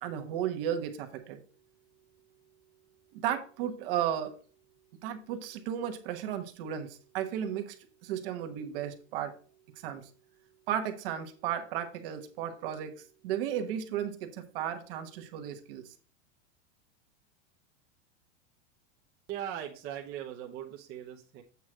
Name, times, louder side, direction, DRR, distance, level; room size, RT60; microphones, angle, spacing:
voice 1, 0.0-1.4 3.1-4.3 5.0-7.7 8.0-9.3 9.8-10.1 10.7-12.9 13.2-15.8, right 10 dB, 50° right, 6 dB, 1.1 m, -34 dB
voice 2, 19.3-21.4, right 10 dB, 30° right, 0 dB, 0.8 m, -39 dB
8.2 x 3.2 x 6.1 m, 0.40 s
supercardioid pair, 165°, 35 cm